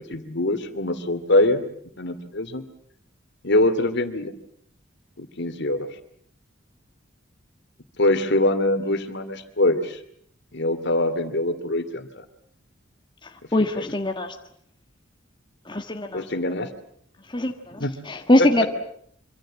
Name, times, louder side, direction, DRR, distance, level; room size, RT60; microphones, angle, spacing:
voice 1, 0.1-1.6 2.0-2.6 3.4-4.3 5.2-5.9 8.0-10.0 10.5-12.2 13.7-13.8 16.1-16.7 17.8-17.9 18.4-18.7, left 1 dB, 60° left, 9 dB, 2.7 m, -23 dB
voice 2, 13.5-14.3 15.7-16.2 17.3-18.7, left 1 dB, 25° left, 4 dB, 1.7 m, -22 dB
26.0 x 25.5 x 7.6 m, 0.67 s
head